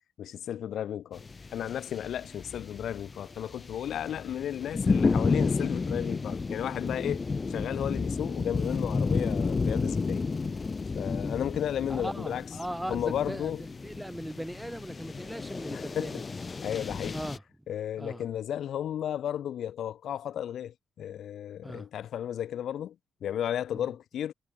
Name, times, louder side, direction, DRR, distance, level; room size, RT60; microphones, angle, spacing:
voice 1, 0.2-1.2 1.5-10.2 10.9-12.4 12.9-13.6 15.7-16.2 16.6-17.2 17.7-22.9 23.2-24.3, left 10 dB, 70° left, 1.4 m, -34 dB
sound 1, 1.2-17.4, left 4 dB, 30° left, 0.3 m, -32 dB
voice 2, 11.9-13.5 13.8-16.2 17.1-17.4 18.0-18.2 21.6-21.9 23.7-23.9, right 1 dB, 5° right, 3.8 m, -38 dB
cardioid pair, 90°, 0 cm